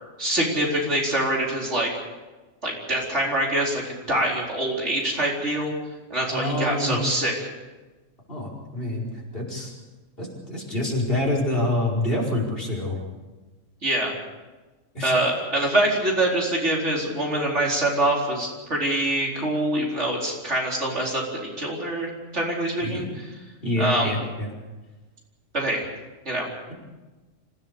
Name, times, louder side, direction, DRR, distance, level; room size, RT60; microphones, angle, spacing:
voice 1, 0.2-1.9 2.6-5.7 6.1-7.3 13.8-14.1 15.0-23.0 23.8-24.1 25.5-25.8 26.2-26.5, right 1 dB, 60° right, -2 dB, 4.6 m, -24 dB
voice 2, 6.3-7.0 8.3-9.1 9.3-9.7 10.2-13.0 14.9-15.1 22.8-23.1 23.6-24.5, left 1 dB, 45° left, -1 dB, 5.2 m, -26 dB
26.0 x 16.5 x 6.9 m, 1.2 s
omnidirectional pair, 1.4 m